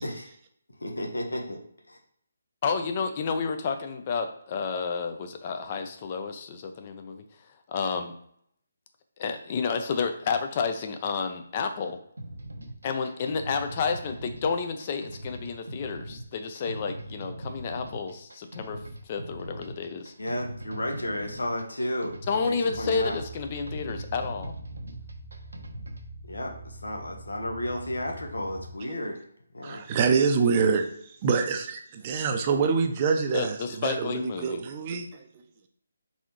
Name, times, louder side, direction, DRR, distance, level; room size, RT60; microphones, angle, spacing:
voice 1, 0.8-1.6 1.9-2.0 20.2-23.2 26.2-29.2 29.5-29.9, left 1 dB, 80° left, 2 dB, 1.1 m, -33 dB
voice 2, 2.6-7.2 7.7-8.1 9.2-12.0 12.8-18.8 19.1-20.1 22.3-24.5 33.3-34.6, left 5 dB, 35° left, 7 dB, 0.6 m, -30 dB
sound 1, 12.2-26.1, right 1 dB, 75° right, 0.8 m, -41 dB
sound 2, 22.7-28.7, right 2 dB, 15° left, 1.2 m, -44 dB
voice 3, 29.6-30.9 31.2-35.1 35.4-35.5, right 5 dB, 30° right, 5 dB, 0.6 m, -25 dB
4.1 x 3.7 x 3.1 m, 0.67 s
figure-of-eight pair, 150°, 0 cm